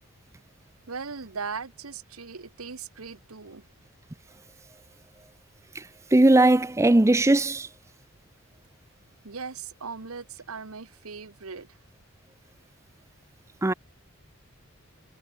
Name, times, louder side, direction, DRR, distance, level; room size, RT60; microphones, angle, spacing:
voice 1, 0.9-3.6 9.2-11.7, right 5 dB, 80° right, 1.2 m, -38 dB
voice 2, 6.1-7.7 13.6-13.7, right 2 dB, 15° right, 0.5 m, -19 dB
head